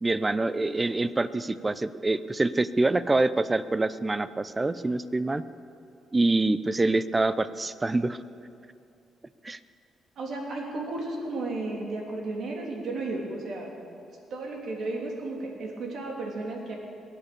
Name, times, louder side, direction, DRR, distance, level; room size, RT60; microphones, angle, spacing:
voice 1, 0.0-5.4 6.1-8.2 9.4-9.6, right 2 dB, 20° right, 15 dB, 0.6 m, -26 dB
voice 2, 10.2-13.7 14.3-16.8, right 2 dB, 65° right, 0 dB, 3.2 m, -33 dB
22.0 x 8.5 x 6.9 m, 2.6 s
cardioid pair, 90°, 0 cm